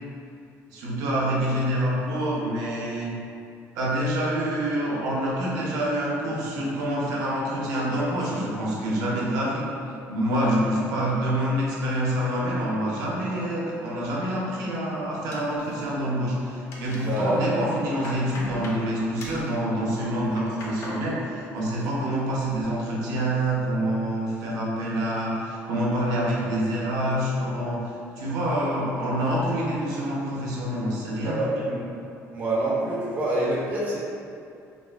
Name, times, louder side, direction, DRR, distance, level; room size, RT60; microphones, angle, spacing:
voice 1, 0.7-3.1 3.7-9.7 10.1-27.8 28.2-31.7, right 1 dB, 80° right, -5 dB, 0.5 m, -26 dB
sound 1, 15.3-16.2 16.4-17.2 17.6-18.8 19.2-19.5 20.1-21.0 21.4-21.9 22.3-22.7, left 1 dB, 50° left, 0.4 m, -41 dB
voice 2, 17.1-17.6 31.2-31.8 32.3-34.0, right 1 dB, 30° right, -6 dB, 0.4 m, -26 dB
2.4 x 2.3 x 2.3 m, 2.6 s
cardioid pair, 160°, 6 cm